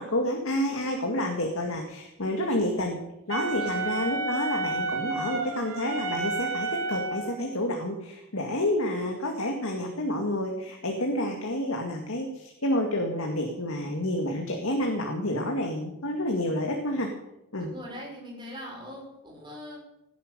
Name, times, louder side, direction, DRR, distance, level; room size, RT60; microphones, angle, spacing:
voice 1, 0.0-3.0 3.3-17.1 17.5-17.7, left 1 dB, 75° left, 2 dB, 2.2 m, -29 dB
Wind instrument woodwind instrument, 3.3-7.5, right 3 dB, 70° right, 2.2 m, -31 dB
voice 2, 17.6-19.8, equal, 20° right, -2 dB, 5.9 m, -41 dB
17.0 x 10.5 x 6.8 m, 0.87 s
head